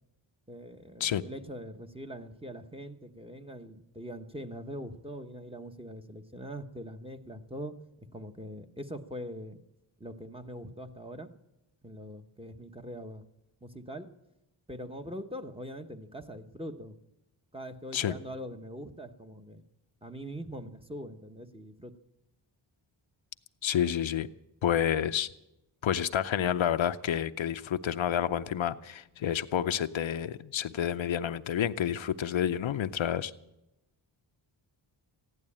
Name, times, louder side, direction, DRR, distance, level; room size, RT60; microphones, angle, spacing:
voice 1, 0.5-7.7 8.1-9.6 10.0-11.3 11.8-13.2 13.6-14.1 14.7-16.9 17.5-19.6 20.0-21.9, equal, 10° right, 6 dB, 1.1 m, -42 dB
voice 2, 23.6-24.3 24.6-25.3 25.8-33.3, left 9 dB, 70° left, 11 dB, 0.7 m, -29 dB
15.0 x 11.0 x 8.7 m, 0.92 s
cardioid pair, 70°, 49 cm